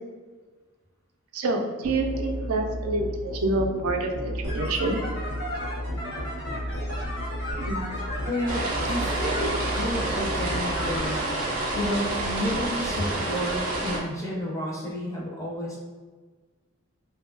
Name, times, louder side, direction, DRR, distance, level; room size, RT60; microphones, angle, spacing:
voice 1, 1.3-5.0 7.5-7.8, right 2 dB, 90° right, 3 dB, 0.4 m, -27 dB
Musical instrument, 1.8-11.1, equal, 70° left, 0.5 m, -33 dB
sound 1, 4.4-12.3, equal, 50° left, 1.0 m, -36 dB
voice 2, 8.3-11.3 11.7-15.8, equal, 15° left, -5 dB, 0.5 m, -31 dB
sound 2, 8.5-14.0, right 2 dB, 40° right, 0.5 m, -29 dB
2.7 x 2.2 x 2.5 m, 1.4 s
head